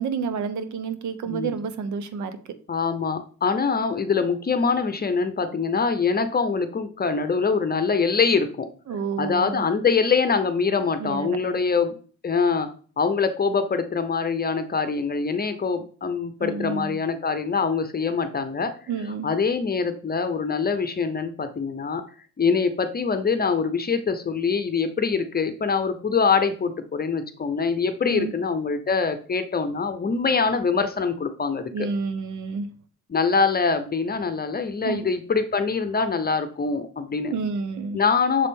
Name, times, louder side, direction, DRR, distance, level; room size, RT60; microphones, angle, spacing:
voice 1, 0.0-2.4 8.9-9.6 11.0-11.4 16.4-17.0 18.9-19.3 28.1-28.3 31.7-32.7 34.8-35.1 37.3-38.0, right 5 dB, 70° right, 1.0 m, -29 dB
voice 2, 2.7-8.7 9.2-11.9 12.2-12.7 13.0-18.7 19.2-22.0 22.4-31.9 33.1-37.3 37.9-38.5, left 5 dB, 30° left, 0.8 m, -24 dB
6.8 x 4.0 x 3.7 m
cardioid pair, 90°, 30 cm